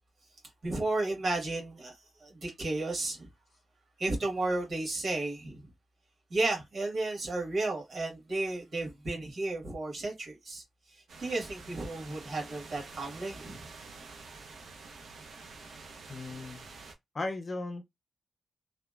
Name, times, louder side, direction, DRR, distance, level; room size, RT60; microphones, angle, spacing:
voice 1, 0.6-3.3 4.0-5.6 6.3-10.6 11.2-13.6, right 2 dB, 45° right, 1.2 m, -33 dB
sound 1, 11.1-16.9, right 4 dB, 75° right, 0.6 m, -48 dB
voice 2, 16.1-16.6 17.1-17.8, left 2 dB, 30° left, 0.4 m, -36 dB
2.8 x 2.0 x 2.2 m
wide cardioid pair, 175°, 0 cm